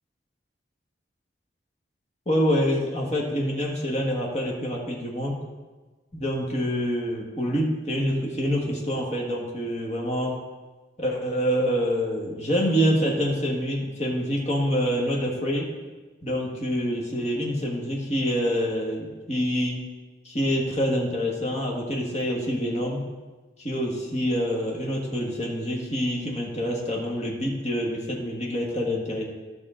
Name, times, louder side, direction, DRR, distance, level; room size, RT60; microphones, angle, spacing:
voice 1, 2.3-5.3 6.1-10.4 11.0-15.7 16.2-19.8 20.3-23.0 23.6-29.3, equal, 35° left, -2 dB, 1.8 m, -26 dB
13.5 x 5.9 x 3.9 m, 1.3 s
head